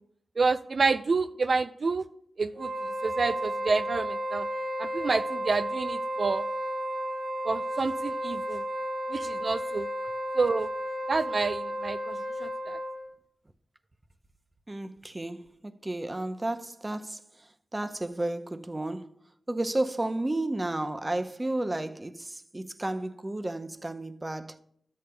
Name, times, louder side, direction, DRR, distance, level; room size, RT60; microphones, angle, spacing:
voice 1, 0.4-2.0 2.4-2.7 3.0-4.5 4.8-6.4 7.4-8.6 9.1-9.9 10.4-10.7 11.1-12.8, right 4 dB, 60° right, 0.3 m, -28 dB
Wind instrument woodwind instrument, 2.5-13.1, equal, 80° right, 1.3 m, -33 dB
voice 2, 14.7-15.4 15.8-17.2 17.7-19.1 19.5-24.6, right 1 dB, 25° right, 0.7 m, -32 dB
12.5 x 8.4 x 2.3 m
cardioid pair, 45°, 0 cm